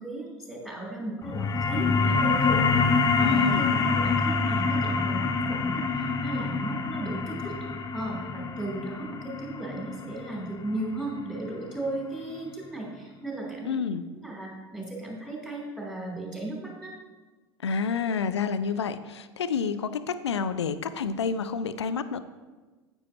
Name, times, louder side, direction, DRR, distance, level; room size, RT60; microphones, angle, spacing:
voice 1, 0.0-2.6 3.1-7.5 7.9-13.8 14.1-16.9, right 2 dB, 5° right, -3 dB, 3.0 m, -36 dB
sound 1, 1.2-12.3, left 4 dB, 25° left, 0.7 m, -26 dB
voice 2, 3.2-3.7 13.6-14.0 17.6-22.2, left 6 dB, 75° left, 13 dB, 0.5 m, -29 dB
9.8 x 9.3 x 2.9 m, 1.3 s
figure-of-eight pair, 80°, 14 cm